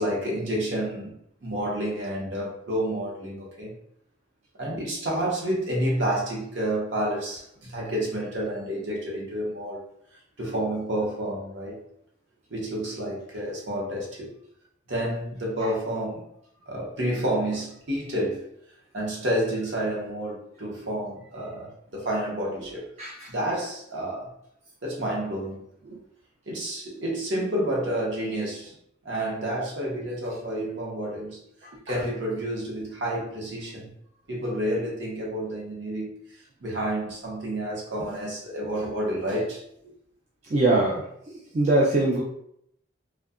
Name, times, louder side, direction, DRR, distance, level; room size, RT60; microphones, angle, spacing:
voice 1, 0.0-3.7 4.6-9.8 10.4-11.8 12.5-14.4 14.9-16.2 16.7-18.4 18.9-24.3 24.8-25.6 26.5-28.7 29.0-31.4 31.9-33.9 34.3-36.2 36.6-39.9, right 1 dB, 60° right, -3 dB, 0.8 m, -29 dB
voice 2, 23.0-23.3 40.5-41.0 41.5-42.2, right 2 dB, 35° right, -5 dB, 0.3 m, -21 dB
2.6 x 2.2 x 2.4 m, 0.73 s
head